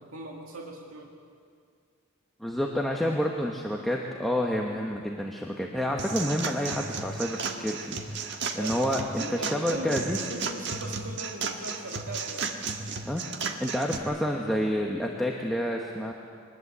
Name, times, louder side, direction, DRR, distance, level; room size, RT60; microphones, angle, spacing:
voice 1, 0.0-1.1 8.6-12.5, right 1 dB, 85° right, -1 dB, 2.2 m, -39 dB
voice 2, 2.4-7.9 8.5-10.2 13.0-13.2 13.6-16.1, equal, ahead, -1 dB, 1.2 m, -29 dB
sound 1, 6.0-14.0, right 5 dB, 55° right, 1.5 m, -34 dB
23.0 x 20.0 x 8.2 m, 2.2 s
head